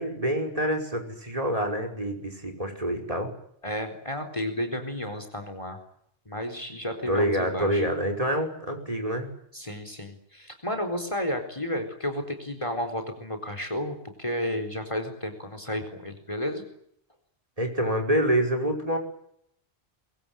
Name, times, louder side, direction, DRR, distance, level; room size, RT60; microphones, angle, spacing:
voice 1, 0.0-3.3 7.1-9.3 17.6-19.0, equal, 35° right, 5 dB, 5.5 m, -27 dB
voice 2, 3.6-5.8 6.3-7.8 9.5-16.6, left 1 dB, 30° left, 7 dB, 4.2 m, -32 dB
23.0 x 23.0 x 9.2 m, 0.71 s
omnidirectional pair, 1.1 m